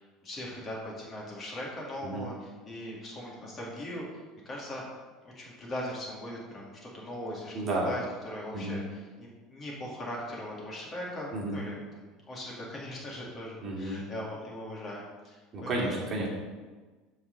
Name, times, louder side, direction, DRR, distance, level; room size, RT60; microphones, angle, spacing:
voice 1, 0.0-4.1 4.4-4.8 5.2-16.1, left 1 dB, 30° left, -3 dB, 2.4 m, -40 dB
voice 2, 7.5-7.9 8.5-8.8 11.3-11.6 13.6-14.0 15.5-16.3, right 2 dB, 30° right, -3 dB, 2.5 m, -31 dB
14.0 x 4.7 x 4.0 m, 1.3 s
supercardioid pair, 130°, 0 cm